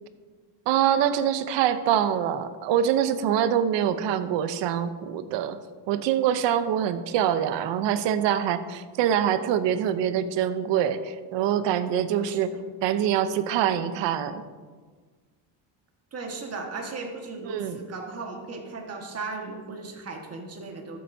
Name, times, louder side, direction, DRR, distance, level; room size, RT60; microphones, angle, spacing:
voice 1, 0.7-5.6 5.9-12.5 12.8-14.4 17.5-17.8, right 9 dB, 75° right, 12 dB, 0.7 m, -24 dB
voice 2, 12.1-12.4 16.1-21.0, right 3 dB, 35° right, 2 dB, 1.5 m, -36 dB
13.5 x 7.8 x 2.7 m, 1.5 s
cardioid pair, 125°, 44 cm